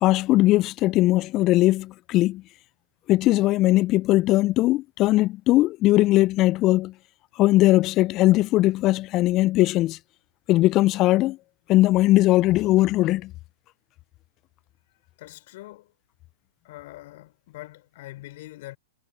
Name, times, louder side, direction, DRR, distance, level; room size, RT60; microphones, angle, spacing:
voice 1, 0.0-2.4 3.1-6.9 7.4-10.0 10.5-11.4 11.7-13.3, left 17 dB, 35° left, 0.4 m, -20 dB
voice 2, 15.2-15.9 16.6-18.8, left 18 dB, 55° left, 5.1 m, -43 dB
figure-of-eight pair, 105°, 0 cm